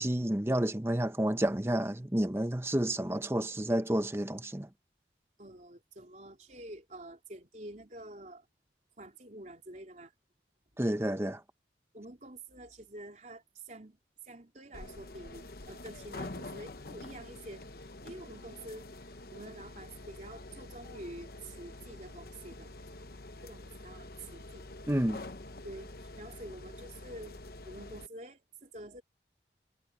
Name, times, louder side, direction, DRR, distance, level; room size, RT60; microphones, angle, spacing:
voice 1, 0.0-4.7 10.8-11.4 24.9-25.2, right 1 dB, 15° right, 0.9 m, -30 dB
voice 2, 5.4-8.5 9.0-10.1 11.9-14.0 14.2-18.9 19.3-22.7 23.4-24.7 25.6-27.4 27.6-29.0, right 1 dB, 45° right, 3.9 m, -48 dB
sound 1, 14.7-28.1, left 2 dB, 60° left, 1.0 m, -47 dB
head